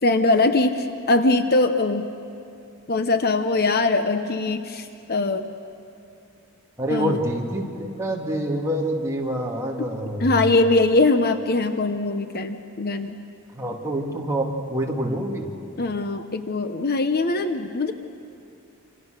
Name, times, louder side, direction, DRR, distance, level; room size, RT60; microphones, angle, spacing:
voice 1, 0.0-2.1 2.9-5.4 6.9-7.2 10.2-13.2 15.8-17.9, left 2 dB, 45° left, 8 dB, 0.9 m, -21 dB
voice 2, 6.8-10.4 13.5-15.5, right 1 dB, 15° right, -1 dB, 2.5 m, -26 dB
28.0 x 27.0 x 6.7 m, 2.6 s
head